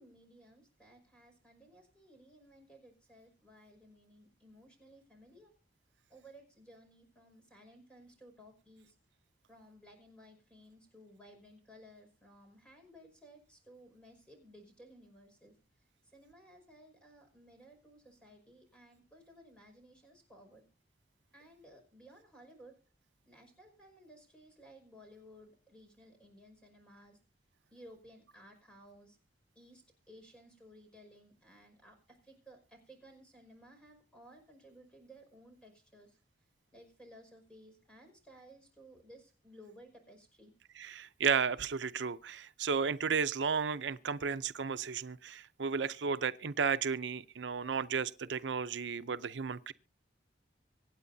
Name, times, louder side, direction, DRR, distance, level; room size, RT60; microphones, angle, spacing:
voice 1, 0.0-5.5 6.1-9.0 9.5-15.5 16.1-20.6 21.3-22.8 23.3-27.2 27.7-29.2 29.6-36.2 36.7-40.5, equal, 5° left, 5.4 m, -58 dB
voice 2, 40.8-49.7, right 6 dB, 80° right, 0.6 m, -33 dB
25.0 x 9.1 x 2.7 m
head